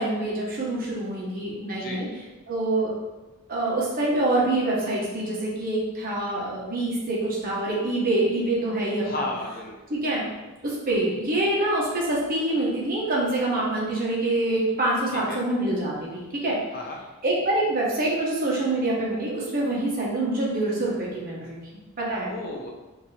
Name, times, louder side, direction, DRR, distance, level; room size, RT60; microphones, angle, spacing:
voice 1, 0.0-2.1 2.5-2.9 3.5-9.3 9.9-10.2 10.6-16.6 17.2-22.3, right 2 dB, 45° right, -5 dB, 1.3 m, -26 dB
voice 2, 9.0-9.8 15.3-15.4 16.7-17.0 22.3-22.7, left 1 dB, 45° left, 0 dB, 0.8 m, -33 dB
5.3 x 3.0 x 3.4 m, 1.1 s
head